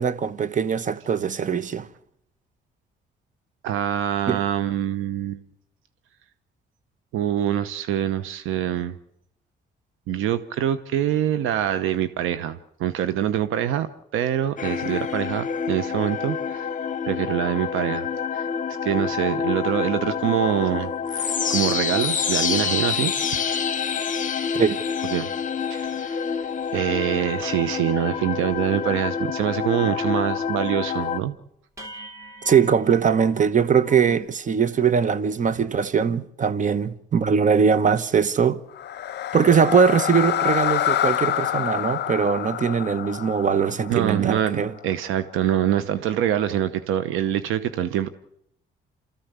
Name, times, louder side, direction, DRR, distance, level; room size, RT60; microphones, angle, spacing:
voice 1, 0.0-1.9 4.3-4.4 24.5-24.8 32.4-38.6 39.3-44.7, right 6 dB, 40° right, 1.1 m, -21 dB
voice 2, 3.6-5.4 7.1-9.0 10.1-16.7 17.1-18.5 18.8-23.6 25.1-25.3 25.7-26.4 26.7-31.4 35.5-35.6 43.9-48.1, right 10 dB, 90° right, 1.0 m, -25 dB
sound 1, 14.6-31.2, left 6 dB, 40° left, 1.1 m, -27 dB
sound 2, 25.9-26.0 26.4-26.6 26.9-27.0 27.4-29.2 29.5-30.0 30.2-30.7 31.1-31.2 31.8-34.3, equal, 15° right, 3.2 m, -45 dB
sound 3, 38.7-44.9, left 11 dB, 60° left, 0.7 m, -27 dB
27.5 x 14.0 x 8.2 m
cardioid pair, 90°, 20 cm